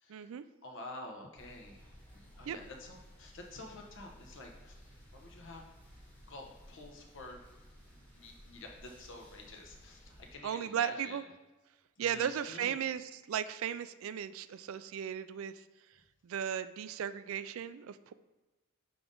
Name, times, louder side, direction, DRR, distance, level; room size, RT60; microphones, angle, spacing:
voice 1, 0.1-0.4 2.5-2.6 10.4-11.2 12.0-15.5 16.2-18.1, right 8 dB, 65° right, 13 dB, 0.3 m, -36 dB
voice 2, 0.6-5.7 6.3-7.4 7.9-11.2 12.0-12.8, left 2 dB, 60° left, 1 dB, 1.0 m, -49 dB
sound 1, 1.4-10.4, equal, 5° left, 1.3 m, -57 dB
6.9 x 4.0 x 3.8 m, 1.1 s
head